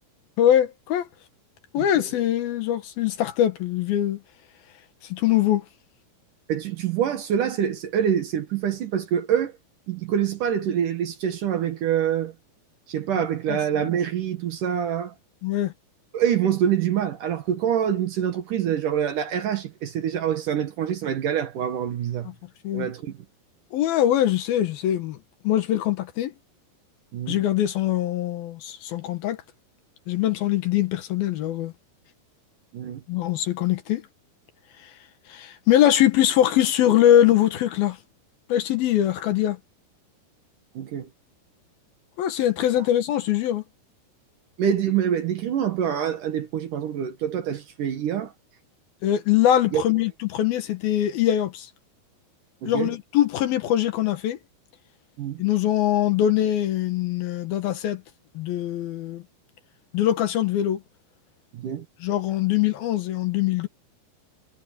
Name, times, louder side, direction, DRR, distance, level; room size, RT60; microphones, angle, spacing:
voice 1, 0.4-1.1 1.7-4.2 5.1-5.6 13.5-13.9 15.4-15.7 22.6-22.9 23.7-25.2 25.4-26.3 27.3-29.4 30.1-31.7 33.1-34.0 35.3-38.0 38.5-39.6 42.2-43.6 49.0-51.7 52.6-54.4 55.4-58.0 58.4-59.2 59.9-60.8 62.0-63.7, left 12 dB, 70° left, 3.0 m, -22 dB
voice 2, 1.8-2.1 6.5-9.5 9.9-12.3 12.9-15.1 16.1-22.3 22.7-23.2 27.1-27.4 32.7-33.0 40.8-41.1 44.6-48.3 49.7-49.8 52.6-52.9 55.2-55.4 61.5-61.9, right 9 dB, 60° right, 2.6 m, -25 dB
omnidirectional pair, 4.8 m